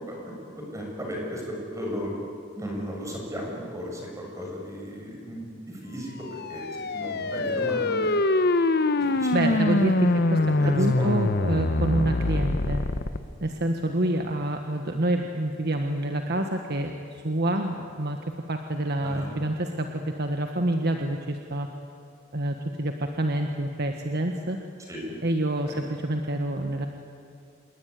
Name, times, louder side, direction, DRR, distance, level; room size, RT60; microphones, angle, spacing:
voice 1, 0.0-2.1 2.6-8.2 8.8-11.1 19.0-19.3 24.9-25.1 25.7-25.8, equal, 15° right, -1 dB, 6.8 m, -36 dB
sound 1, 6.3-13.2, left 2 dB, 55° left, 1.0 m, -24 dB
voice 2, 9.0-10.4 10.6-12.8 13.4-18.2 18.5-21.7 22.3-24.6 25.2-26.9, right 1 dB, 55° right, 4 dB, 1.6 m, -27 dB
27.5 x 21.0 x 9.5 m, 2.3 s
head